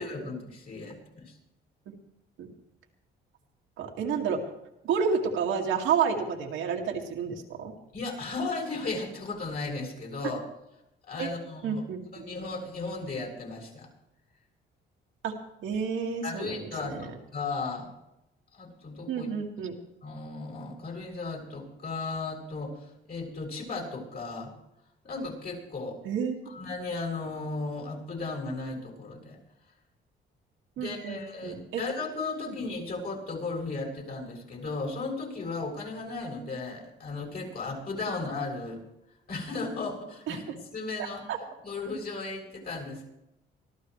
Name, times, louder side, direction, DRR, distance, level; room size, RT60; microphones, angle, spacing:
voice 1, 0.0-1.4 7.9-10.4 11.1-11.8 12.1-13.9 16.2-17.9 18.5-19.3 20.0-24.5 25.0-26.0 26.5-29.4 30.8-38.8 39.3-40.4 40.7-41.2 41.6-43.1, left 3 dB, 50° left, -1 dB, 6.9 m, -35 dB
voice 2, 3.8-4.4 4.8-7.7 11.2-11.3 11.6-12.3 15.2-15.3 15.6-17.1 19.1-19.8 26.0-26.6 30.8-31.8 32.5-32.6 40.3-40.4 41.3-41.4, right 6 dB, 85° right, 1 dB, 2.2 m, -30 dB
24.0 x 14.0 x 3.2 m, 0.87 s
cardioid pair, 90°, 20 cm